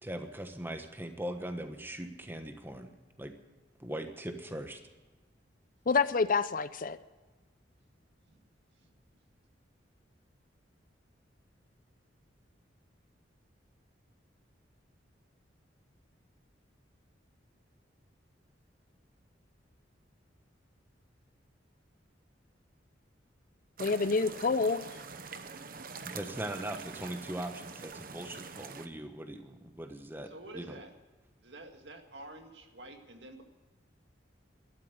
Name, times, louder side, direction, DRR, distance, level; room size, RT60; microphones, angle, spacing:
voice 1, 0.0-2.9 3.2-3.3 3.8-4.8 26.0-30.8, right 1 dB, 10° right, 6 dB, 1.2 m, -40 dB
voice 2, 5.9-7.0 23.8-24.9, left 4 dB, 45° left, 15 dB, 0.5 m, -28 dB
sound 1, 23.8-28.9, right 5 dB, 50° right, 0.9 m, -45 dB
voice 3, 30.2-30.9 31.4-33.4, right 2 dB, 65° right, 4 dB, 2.1 m, -49 dB
13.0 x 11.5 x 7.8 m, 1.3 s
head